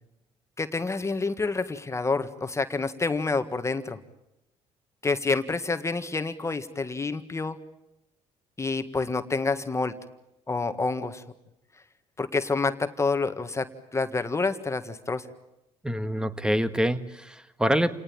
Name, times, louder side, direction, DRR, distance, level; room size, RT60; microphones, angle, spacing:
voice 1, 0.6-4.0 5.0-7.6 8.6-9.9 10.5-11.2 12.2-15.2, left 3 dB, 20° left, 9 dB, 1.7 m, -28 dB
voice 2, 15.8-17.9, equal, 5° right, 11 dB, 1.8 m, -26 dB
28.5 x 19.0 x 8.8 m, 0.90 s
supercardioid pair, 80°, 13 cm